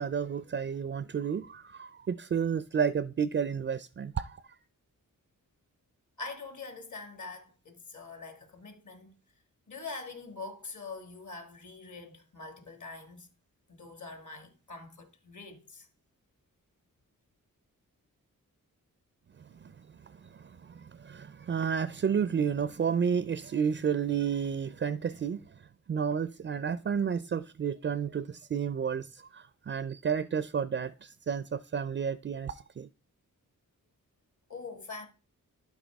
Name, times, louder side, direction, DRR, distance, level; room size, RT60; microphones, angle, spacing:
voice 1, 0.0-4.6 19.4-19.7 20.0-25.4 25.9-32.9, right 7 dB, 35° right, 0.4 m, -31 dB
voice 2, 6.2-9.2 9.7-13.3 13.7-15.9 34.5-35.1, left 3 dB, 60° left, 1.6 m, -44 dB
11.5 x 4.8 x 3.5 m
cardioid pair, 70°, 34 cm